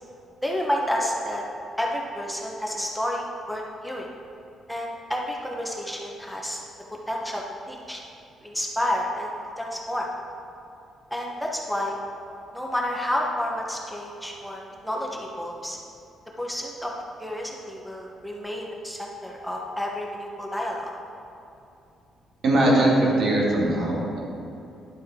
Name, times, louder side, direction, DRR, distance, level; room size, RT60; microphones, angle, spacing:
voice 1, 0.4-1.4 1.8-4.1 4.7-6.6 7.1-8.0 8.4-10.1 11.1-12.0 12.5-15.8 16.4-16.9 17.2-20.9, left 1 dB, ahead, -1 dB, 1.1 m, -30 dB
voice 2, 22.4-24.2, right 1 dB, 65° right, -3 dB, 2.2 m, -20 dB
10.5 x 7.7 x 3.8 m, 2.8 s
cardioid pair, 90°, 0 cm